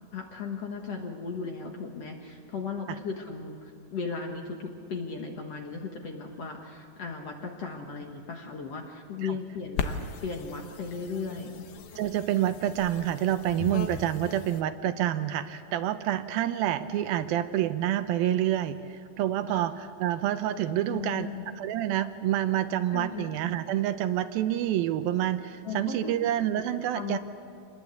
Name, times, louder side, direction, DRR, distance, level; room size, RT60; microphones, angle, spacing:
voice 1, 0.1-11.6 19.5-19.6 20.9-21.5 22.9-23.6 25.6-26.1 26.9-27.2, left 5 dB, 55° left, 2 dB, 1.9 m, -36 dB
sound 1, 9.8-14.6, left 6 dB, 75° left, 2.9 m, -38 dB
voice 2, 12.0-21.3 21.6-27.2, right 12 dB, 80° right, 10 dB, 2.4 m, -28 dB
26.0 x 20.5 x 8.2 m, 2.3 s
omnidirectional pair, 4.4 m